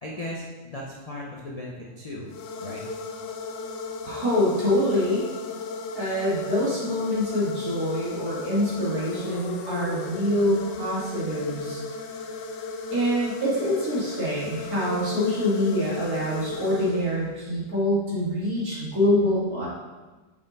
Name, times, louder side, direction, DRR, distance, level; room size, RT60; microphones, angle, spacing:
voice 1, 0.0-2.3 2.6-2.8, left 1 dB, 60° left, -4 dB, 0.4 m, -36 dB
sound 1, 2.3-17.5, left 3 dB, 80° left, 1.2 m, -36 dB
voice 2, 4.0-5.3 5.9-11.8 12.9-19.7, left 1 dB, 55° right, -8 dB, 2.5 m, -25 dB
5.5 x 4.7 x 3.9 m, 1.2 s
omnidirectional pair, 1.9 m